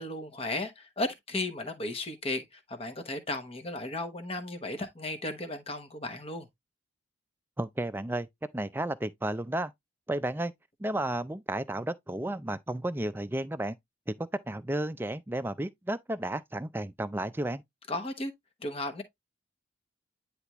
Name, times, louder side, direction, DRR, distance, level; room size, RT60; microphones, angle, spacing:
voice 1, 0.0-6.5 17.9-18.3 18.6-19.0, left 2 dB, 30° left, 1.0 m, -35 dB
voice 2, 7.6-8.3 8.5-9.7 10.1-10.5 10.8-13.8 14.1-17.6, right 1 dB, 10° right, 0.4 m, -32 dB
9.7 x 3.4 x 3.0 m
head